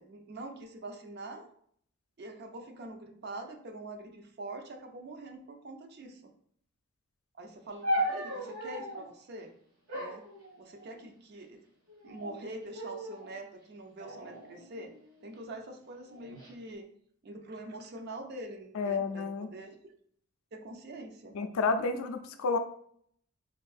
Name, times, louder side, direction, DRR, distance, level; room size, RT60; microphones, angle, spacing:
voice 1, 0.0-1.5 2.2-6.3 7.4-9.5 9.9-10.3 10.6-11.6 12.0-14.9 15.2-16.9 17.2-19.7 20.5-21.4, right 2 dB, 50° right, 4 dB, 0.4 m, -44 dB
sound 1, 7.8-9.1 9.9-11.1 11.9-12.4 12.7-13.3 14.0-15.3 16.1-16.5, equal, 85° right, 1.5 m, -36 dB
voice 2, 18.7-19.5 21.3-22.6, left 4 dB, 75° left, 8 dB, 0.3 m, -30 dB
3.5 x 2.6 x 2.3 m, 0.63 s
head